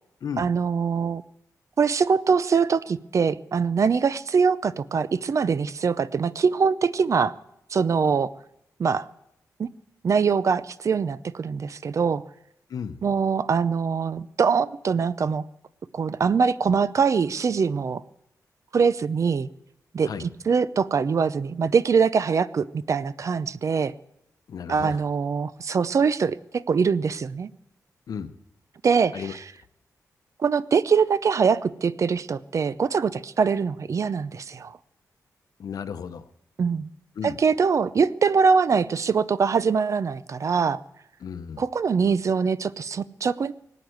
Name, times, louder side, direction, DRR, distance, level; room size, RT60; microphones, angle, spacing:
voice 1, 0.4-1.2 1.8-7.3 7.7-8.3 8.8-9.1 9.6-9.7 10.0-12.2 13.0-15.4 15.9-18.0 18.7-19.5 19.9-23.9 24.7-27.5 28.8-29.2 30.4-34.7 36.6-36.9 37.2-40.8 41.6-43.5, right 5 dB, 55° right, 17 dB, 0.6 m, -23 dB
voice 2, 12.7-13.0 20.0-20.3 24.5-25.0 28.1-28.3 29.1-29.4 35.6-36.2 37.2-37.4 41.2-41.6, left 7 dB, 80° left, 12 dB, 0.8 m, -34 dB
19.5 x 9.0 x 7.9 m, 0.83 s
wide cardioid pair, 100°, 6 cm